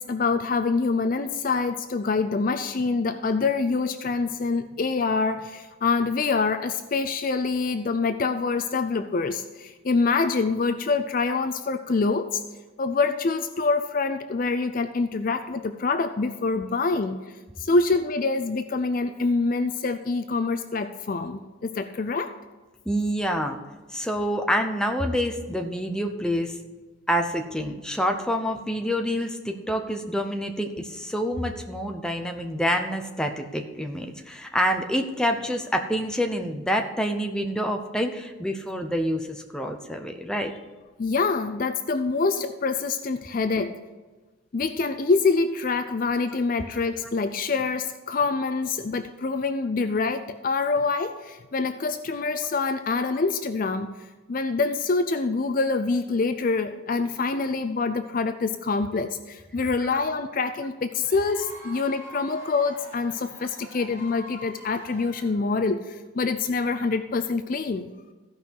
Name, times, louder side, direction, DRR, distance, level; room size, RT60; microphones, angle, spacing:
voice 1, 0.0-12.4 12.8-17.2 17.6-22.3 41.0-43.8 44.5-53.9 54.3-67.9, left 4 dB, 40° left, 9 dB, 0.4 m, -25 dB
voice 2, 22.9-23.6 23.9-26.6 27.1-40.5 59.8-59.9, equal, 5° left, 3 dB, 0.7 m, -27 dB
Cheering / Applause / Crowd, 61.0-65.7, equal, 15° right, 2.8 m, -44 dB
15.0 x 5.5 x 4.6 m, 1.3 s
head